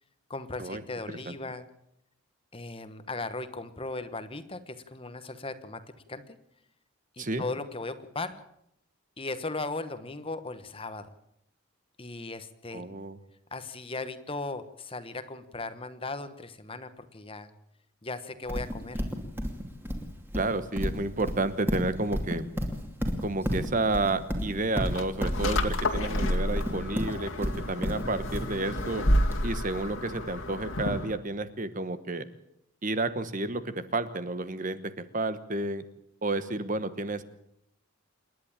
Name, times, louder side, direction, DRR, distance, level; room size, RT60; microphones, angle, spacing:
voice 1, 0.3-1.7 2.5-5.8 6.1-6.4 7.2-8.4 9.2-11.1 12.0-12.8 13.5-17.5 18.0-19.1, left 3 dB, 25° left, 11 dB, 1.2 m, -37 dB
voice 2, 12.7-13.2 20.3-22.5 23.2-29.0 29.4-32.3 32.8-35.8 36.2-37.2, right 2 dB, 35° right, 12 dB, 1.1 m, -31 dB
Livestock farm animals working animals, 18.5-29.3, equal, 10° right, 2.6 m, -32 dB
sound 1, 24.8-31.2, left 1 dB, 65° left, 2.3 m, -30 dB
28.0 x 11.0 x 8.9 m, 0.77 s
head